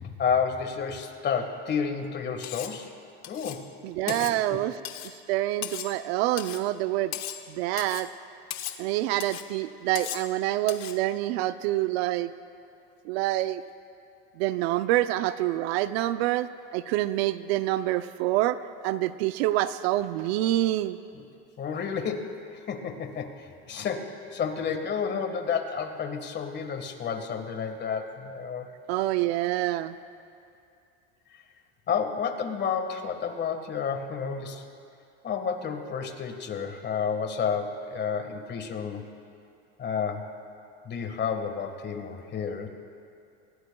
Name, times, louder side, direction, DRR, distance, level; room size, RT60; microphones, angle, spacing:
voice 1, 0.0-2.9 3.3-3.6 4.1-4.6 21.1-21.2 21.6-28.7 31.9-34.7 35.2-39.1 39.8-40.3 40.8-42.7, left 6 dB, 35° left, 6 dB, 1.6 m, -31 dB
Cutlery silverware, 2.4-2.8 3.2-3.6 4.1-4.4 4.8-5.2 5.6-6.0 6.4-6.7 7.1-7.5 7.8-8.1 8.5-8.8 9.2-9.5 10.0-10.3 10.7-11.0, left 12 dB, 55° left, 1.0 m, -37 dB
voice 2, 3.8-4.8 5.3-7.1 7.5-8.1 8.8-12.3 13.1-13.6 14.4-16.5 16.7-18.6 18.8-21.0 28.9-29.9, right 15 dB, 70° right, 13 dB, 0.6 m, -26 dB
26.0 x 17.5 x 2.3 m, 2.5 s
supercardioid pair, 115°, 32 cm